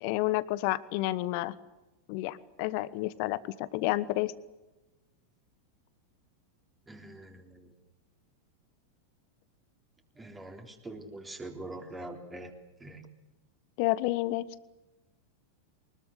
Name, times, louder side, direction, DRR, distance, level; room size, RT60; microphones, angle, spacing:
voice 1, 0.0-1.5 2.1-4.3 13.8-14.5, left 18 dB, 45° left, 17 dB, 1.2 m, -30 dB
voice 2, 6.9-7.7 10.2-12.5 12.8-13.0, right 2 dB, 10° right, 3 dB, 3.9 m, -44 dB
23.5 x 21.0 x 8.2 m, 1.0 s
figure-of-eight pair, 90°, 0 cm